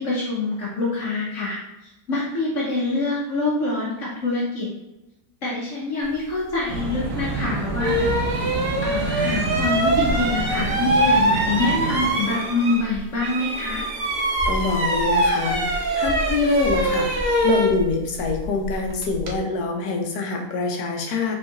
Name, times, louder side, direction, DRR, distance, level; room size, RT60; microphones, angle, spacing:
voice 1, 0.0-1.6 1.8-4.7 5.4-8.1 8.4-13.8, left 2 dB, 60° left, -6 dB, 1.1 m, -25 dB
sound 1, 6.7-12.1, right 2 dB, 90° right, 1.3 m, -28 dB
sound 2, 7.2-7.3 7.8-13.0 13.2-19.4, right 1 dB, 55° right, 0.7 m, -23 dB
voice 2, 14.5-21.3, left 4 dB, 85° left, 2 dB, 1.2 m, -25 dB
4.1 x 3.7 x 2.3 m, 0.97 s
omnidirectional pair, 1.6 m